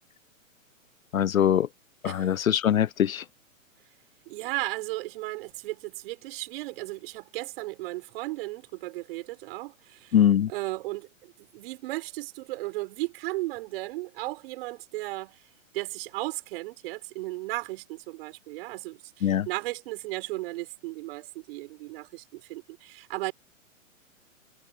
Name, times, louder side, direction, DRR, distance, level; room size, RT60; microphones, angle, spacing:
voice 1, 1.1-1.7 2.0-3.2 10.1-10.5 19.2-19.5, left 9 dB, 85° left, 0.7 m, -22 dB
voice 2, 2.0-2.4 4.3-10.2 10.5-15.4 15.7-23.3, right 20 dB, 45° right, 5.4 m, -35 dB
hypercardioid pair, 130°, 40 cm